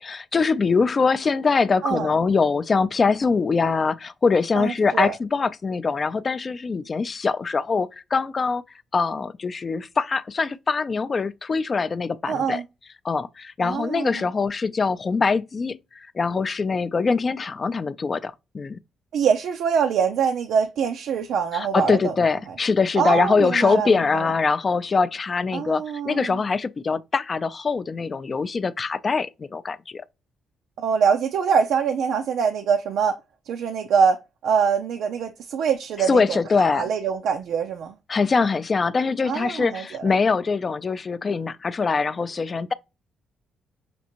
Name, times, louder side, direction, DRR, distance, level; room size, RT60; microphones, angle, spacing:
voice 1, 0.0-8.6 8.9-12.6 13.0-18.8 21.5-30.0 36.1-36.8 38.1-42.7, left 4 dB, 35° left, 0.4 m, -23 dB
voice 2, 4.6-5.1 12.3-12.6 13.6-14.2 19.1-22.2 22.5-22.6 23.0-24.3 25.5-26.4 30.8-33.2 33.5-38.0 39.3-40.1, right 6 dB, 75° right, 0.4 m, -24 dB
5.9 x 2.5 x 2.9 m
cardioid pair, 90°, 0 cm